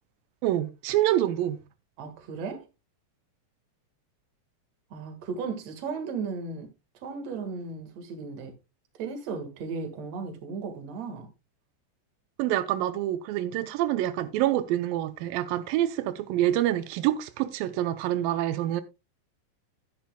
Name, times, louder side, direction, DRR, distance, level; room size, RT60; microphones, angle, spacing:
voice 1, 0.4-1.6 12.4-18.8, right 13 dB, 90° right, 2.4 m, -26 dB
voice 2, 2.0-2.7 4.9-6.7 6.9-8.6 9.0-11.3, right 5 dB, 55° right, 2.6 m, -35 dB
12.5 x 10.0 x 2.2 m
omnidirectional pair, 3.9 m